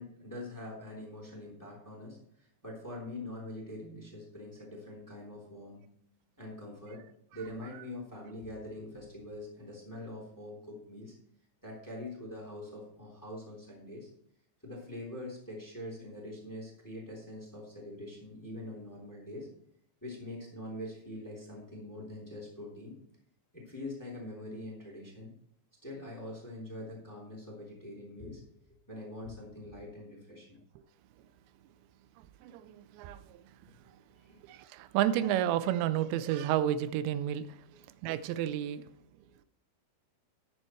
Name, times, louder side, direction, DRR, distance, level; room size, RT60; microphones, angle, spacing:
voice 1, 0.0-5.8 6.4-7.0 7.3-11.1 11.6-14.1 14.6-19.5 20.0-22.9 23.5-25.3 25.8-28.4 28.9-30.6 34.1-34.4, left 1 dB, 5° left, -1 dB, 2.7 m, -44 dB
voice 2, 32.2-33.4 34.5-37.6 38.0-38.8, right 11 dB, 90° right, 12 dB, 2.9 m, -31 dB
14.0 x 10.0 x 3.2 m, 0.68 s
omnidirectional pair, 5.0 m